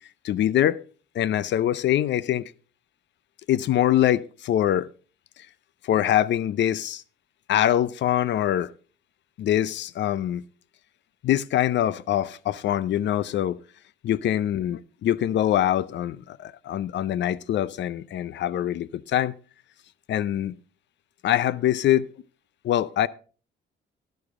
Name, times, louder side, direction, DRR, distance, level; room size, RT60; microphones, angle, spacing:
voice 1, 0.2-0.8 1.2-2.5 3.5-4.9 5.9-7.0 7.5-8.7 9.4-10.4 11.2-13.6 14.0-19.3 20.1-20.5 21.2-22.1 22.6-23.1, left 11 dB, 65° left, 0.5 m, -24 dB
11.5 x 11.0 x 3.6 m
cardioid pair, 90°, 20 cm